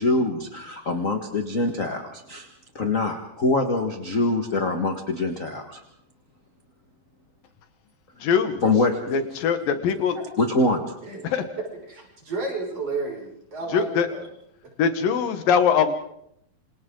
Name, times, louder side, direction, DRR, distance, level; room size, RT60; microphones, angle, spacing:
voice 1, 0.0-2.5 2.7-5.8 8.2-8.3 8.6-9.0 10.4-10.8, left 2 dB, 40° left, 5 dB, 1.2 m, -24 dB
voice 2, 8.2-8.6 9.1-10.2 11.2-11.4 13.7-14.1 14.8-15.9, left 6 dB, 75° left, 9 dB, 3.1 m, -22 dB
voice 3, 11.9-14.3, right 3 dB, 40° right, -1 dB, 7.0 m, -32 dB
28.0 x 27.0 x 3.9 m, 0.73 s
omnidirectional pair, 4.1 m